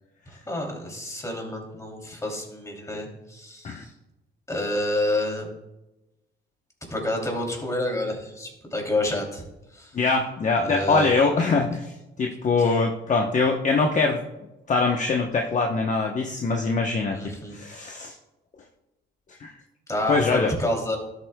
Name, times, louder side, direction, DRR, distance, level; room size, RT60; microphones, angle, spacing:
voice 1, 0.5-3.9 4.5-5.5 6.9-9.4 9.7-9.9 10.6-11.1 11.5-11.6 17.1-17.5 17.9-18.0 19.9-21.0, left 1 dB, 15° left, 1 dB, 2.8 m, -29 dB
voice 2, 9.9-14.2 14.7-17.2 17.5-18.1 19.4-19.5 20.1-20.5, left 4 dB, 40° left, 2 dB, 0.9 m, -23 dB
12.5 x 8.1 x 2.2 m, 0.97 s
cardioid pair, 90°, 20 cm